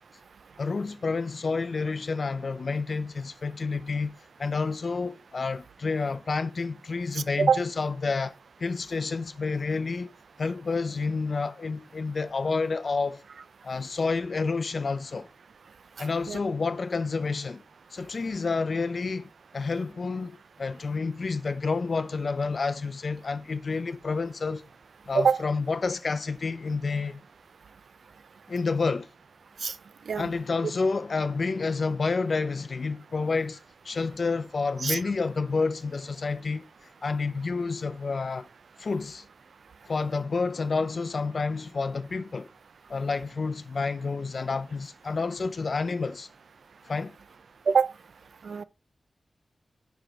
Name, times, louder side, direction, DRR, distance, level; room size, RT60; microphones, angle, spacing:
voice 1, 0.6-4.1 4.4-10.1 10.4-13.2 13.6-15.3 16.0-17.6 17.9-24.6 25.1-27.2 28.5-29.1 30.1-33.6 33.8-36.7 37.0-38.5 38.8-39.2 39.9-42.5 42.9-46.3 46.8-47.2, left 4 dB, 65° left, 0.5 m, -29 dB
voice 2, 16.0-16.4 25.1-25.4 29.6-29.7 30.1-30.3 34.8-35.0 47.7-47.9 48.4-48.6, right 6 dB, 80° right, 0.4 m, -24 dB
5.0 x 4.4 x 4.7 m
cardioid pair, 50°, 0 cm